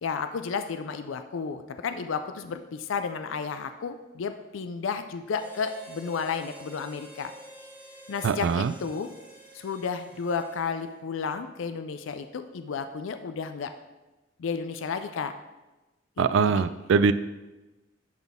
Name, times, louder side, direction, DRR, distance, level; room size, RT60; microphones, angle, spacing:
voice 1, 0.0-7.3 8.1-9.1 9.5-13.7 14.4-15.3 16.2-16.6, left 5 dB, 80° left, 9 dB, 0.4 m, -32 dB
Harmonica, 5.3-10.9, right 1 dB, 10° right, 1.0 m, -49 dB
voice 2, 8.2-8.7 16.2-17.1, right 5 dB, 75° right, 14 dB, 0.3 m, -22 dB
10.5 x 4.1 x 3.5 m, 1.1 s
head